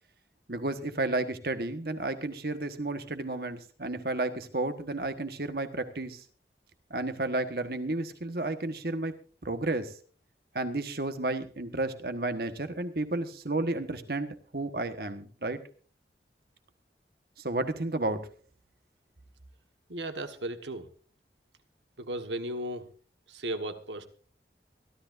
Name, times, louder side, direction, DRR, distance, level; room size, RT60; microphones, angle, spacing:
voice 1, 0.5-6.2 6.9-9.1 9.4-10.0 10.5-15.6 17.4-18.3, right 2 dB, 60° right, 9 dB, 1.3 m, -32 dB
voice 2, 19.9-20.9 22.0-22.9 23.3-24.1, right 1 dB, 90° right, 8 dB, 1.5 m, -35 dB
24.0 x 12.5 x 2.6 m, 0.40 s
head